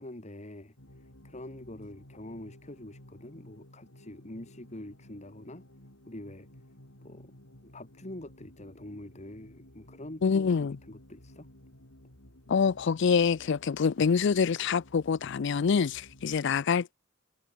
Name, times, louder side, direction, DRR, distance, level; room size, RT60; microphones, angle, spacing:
voice 1, 0.0-5.6 6.1-6.5 7.0-7.3 7.6-11.5, left 1 dB, 35° left, 2.1 m, -45 dB
sound 1, 0.8-16.4, left 1 dB, 85° left, 6.2 m, -55 dB
voice 2, 10.2-10.8 12.5-16.9, left 6 dB, 60° left, 0.4 m, -26 dB
head